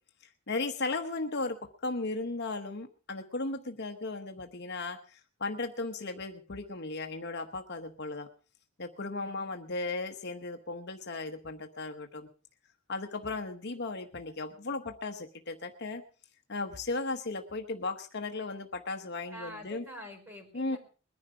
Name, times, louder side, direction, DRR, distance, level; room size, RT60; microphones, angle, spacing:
voice 1, 0.5-8.3 8.8-12.3 12.9-16.0 16.5-19.8 20.5-20.8, left 3 dB, 55° left, 6 dB, 1.1 m, -36 dB
voice 2, 9.1-9.6 19.3-20.8, left 1 dB, 10° right, 3 dB, 5.4 m, -46 dB
21.5 x 11.0 x 5.0 m, 0.38 s
head